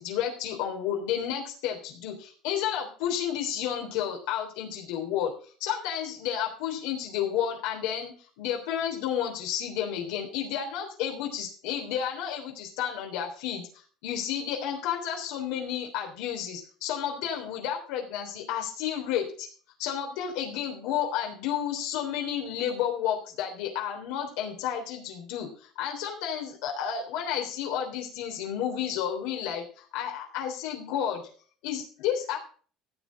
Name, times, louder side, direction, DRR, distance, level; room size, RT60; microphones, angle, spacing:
voice 1, 0.0-19.5 19.8-31.3 31.6-32.4, left 9 dB, 75° left, 1 dB, 3.4 m, -31 dB
15.0 x 8.7 x 3.8 m, 0.41 s
cardioid pair, 170°, 0 cm